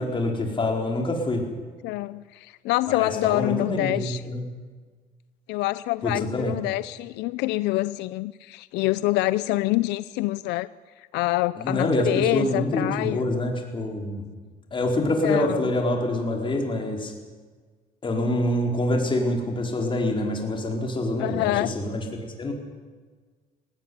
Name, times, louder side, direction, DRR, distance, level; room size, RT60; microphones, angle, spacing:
voice 1, 0.0-1.5 2.9-4.4 6.0-6.5 11.6-14.3 14.7-17.1 18.0-22.5, left 1 dB, 30° left, 2 dB, 4.6 m, -26 dB
voice 2, 1.8-4.2 5.5-10.7 11.0-13.3 15.2-15.6 21.2-21.7, left 18 dB, 90° left, 16 dB, 0.5 m, -26 dB
18.5 x 17.5 x 9.5 m, 1.5 s
cardioid pair, 110°, 17 cm